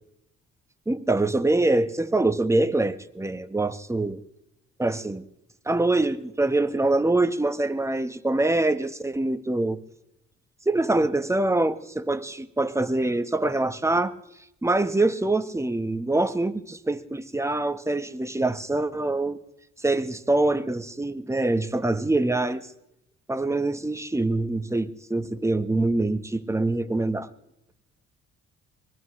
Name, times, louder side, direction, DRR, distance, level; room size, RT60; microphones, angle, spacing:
voice 1, 0.9-4.2 4.8-5.2 5.7-9.8 10.7-14.1 14.6-19.4 19.8-22.7 23.3-27.3, right 2 dB, 10° right, 1.1 m, -24 dB
24.0 x 19.0 x 3.2 m
cardioid pair, 90°, 30 cm